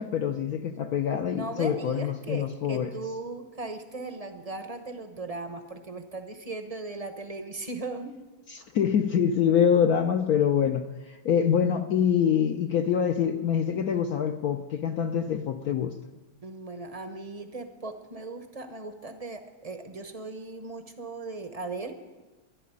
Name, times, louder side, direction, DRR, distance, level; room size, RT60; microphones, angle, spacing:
voice 1, 0.0-2.9 8.5-15.9, left 8 dB, 70° left, 7 dB, 0.9 m, -25 dB
voice 2, 1.4-8.2 16.4-22.0, right 3 dB, 35° right, 7 dB, 0.6 m, -38 dB
12.5 x 11.5 x 9.9 m, 1.2 s
omnidirectional pair, 2.2 m